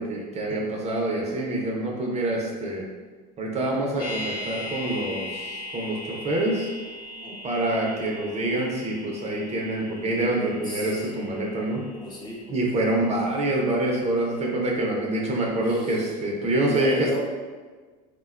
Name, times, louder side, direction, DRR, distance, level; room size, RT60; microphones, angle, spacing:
voice 1, 0.0-2.8 3.4-6.7 7.4-11.9 12.5-17.1, right 1 dB, 30° right, -1 dB, 0.5 m, -26 dB
sound 1, 4.0-14.0 14.3-14.4, left 1 dB, 55° left, 0.7 m, -39 dB
voice 2, 10.6-11.4 12.0-12.5 15.6-16.1 16.7-17.2, equal, 20° left, -3 dB, 0.6 m, -36 dB
3.4 x 2.2 x 2.2 m, 1.4 s
hypercardioid pair, 85°, 21 cm